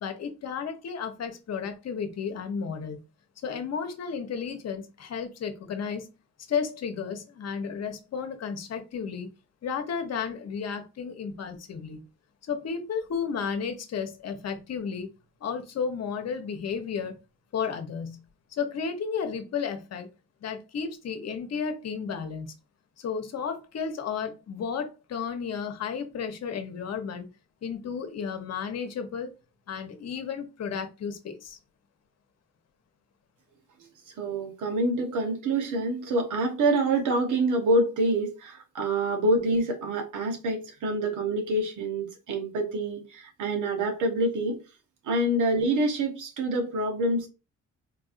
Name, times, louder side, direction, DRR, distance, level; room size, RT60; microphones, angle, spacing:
voice 1, 0.0-3.0 3.4-6.1 6.5-9.3 9.6-12.0 12.4-15.1 15.4-17.2 17.5-18.2 18.5-20.1 20.4-22.5 23.0-27.3 27.6-29.4 29.7-31.6, left 6 dB, 55° left, 1.0 m, -33 dB
voice 2, 34.2-44.6 45.1-47.3, right 2 dB, 80° right, 1.2 m, -26 dB
4.4 x 2.6 x 2.5 m
cardioid pair, 90°, 30 cm